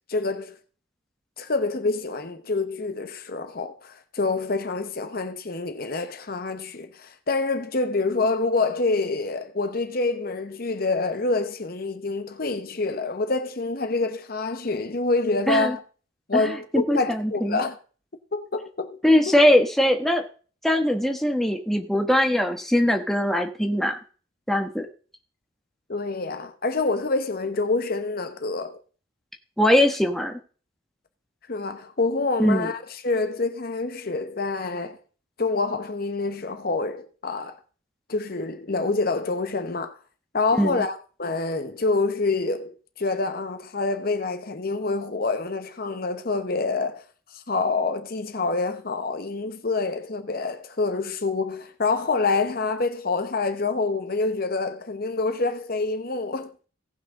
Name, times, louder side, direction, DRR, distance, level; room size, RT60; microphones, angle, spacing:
voice 1, 0.1-0.6 1.4-15.8 16.3-17.8 18.3-19.0 19.3-19.4 25.9-28.8 31.5-35.0 35.4-37.6 38.1-40.0 40.3-47.0 47.3-56.5, left 3 dB, 50° left, 1.0 m, -27 dB
voice 2, 16.3-17.6 19.0-20.2 20.6-24.0 24.5-24.9 29.6-30.4 32.4-32.7 40.6-40.8, left 1 dB, ahead, 1.2 m, -21 dB
17.5 x 6.0 x 3.7 m
head